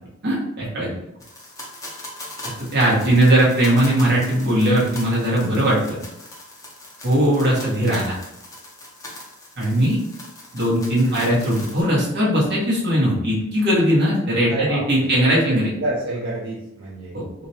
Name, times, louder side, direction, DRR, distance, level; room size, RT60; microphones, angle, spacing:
voice 1, 0.2-0.9 2.7-6.0 7.0-8.2 9.6-10.0 10.5-15.7 17.1-17.2, right 1 dB, 50° right, -6 dB, 0.9 m, -19 dB
sound 1, 1.2-11.8, left 1 dB, 15° left, 0.5 m, -40 dB
voice 2, 11.0-11.4 14.5-15.1 15.4-17.1, right 2 dB, 75° right, -6 dB, 0.5 m, -28 dB
2.5 x 2.0 x 2.7 m, 0.84 s
head